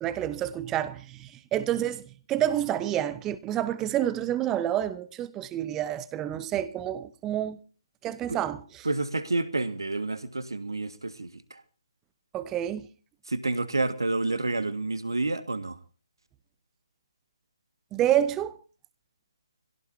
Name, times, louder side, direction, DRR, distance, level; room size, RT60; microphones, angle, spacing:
voice 1, 0.0-2.0 2.3-7.6 8.0-8.9 12.3-12.9 17.9-18.6, right 11 dB, 15° right, 0.8 m, -28 dB
voice 2, 8.8-11.6 13.3-15.8, right 2 dB, 65° right, 1.9 m, -29 dB
25.0 x 17.0 x 2.8 m
figure-of-eight pair, 140°, 2 cm